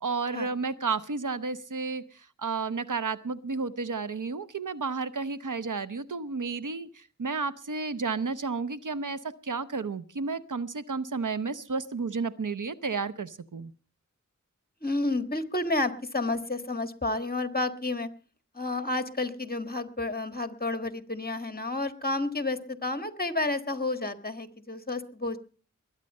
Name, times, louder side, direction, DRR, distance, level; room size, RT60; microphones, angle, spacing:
voice 1, 0.0-13.7, right 4 dB, 70° right, 14 dB, 0.8 m, -32 dB
voice 2, 14.8-18.1 18.5-25.4, left 2 dB, 30° left, 10 dB, 1.5 m, -30 dB
21.5 x 8.9 x 5.4 m, 0.39 s
wide cardioid pair, 40°, 32 cm